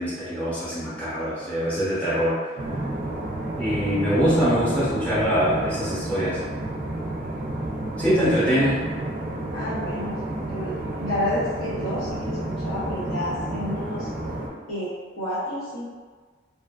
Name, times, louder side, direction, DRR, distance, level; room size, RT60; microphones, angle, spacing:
voice 1, 0.0-2.5 3.6-6.4 8.0-8.8, equal, 5° left, -11 dB, 0.7 m, -23 dB
sound 1, 2.6-14.5, right 1 dB, 45° right, 0.4 m, -31 dB
voice 2, 8.1-8.6 9.5-14.1 14.7-15.9, left 1 dB, 90° left, -11 dB, 0.8 m, -30 dB
2.8 x 2.3 x 2.2 m, 1.4 s
head